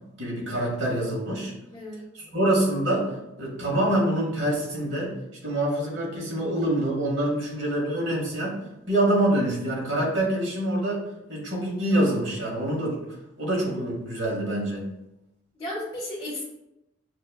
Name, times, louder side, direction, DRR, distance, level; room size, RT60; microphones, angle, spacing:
voice 1, 0.2-1.5 2.1-5.1 5.4-8.6 8.9-13.0 13.4-14.9, right 1 dB, 55° right, -3 dB, 1.2 m, -26 dB
voice 2, 1.7-2.4 15.5-16.4, left 1 dB, 20° left, -8 dB, 0.8 m, -35 dB
6.4 x 2.2 x 2.3 m, 0.89 s
head